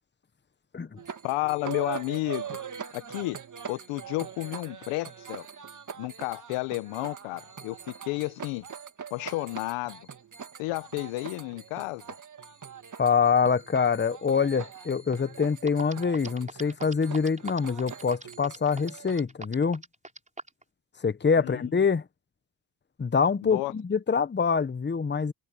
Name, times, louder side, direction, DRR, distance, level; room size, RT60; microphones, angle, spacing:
sound 1, 1.0-19.2, right 7 dB, 40° right, 2.2 m, -42 dB
voice 1, 1.2-2.6 2.9-3.4 3.7-5.5 6.0-8.7 9.1-10.1 10.6-12.0 21.4-21.6 23.4-23.7, left 21 dB, 85° left, 1.2 m, -32 dB
voice 2, 13.0-19.8 21.0-22.0 23.0-25.3, left 5 dB, 20° left, 1.2 m, -25 dB
sound 2, 15.3-15.4 15.7-20.6, right 2 dB, 15° right, 4.3 m, -40 dB
supercardioid pair, 65°, 48 cm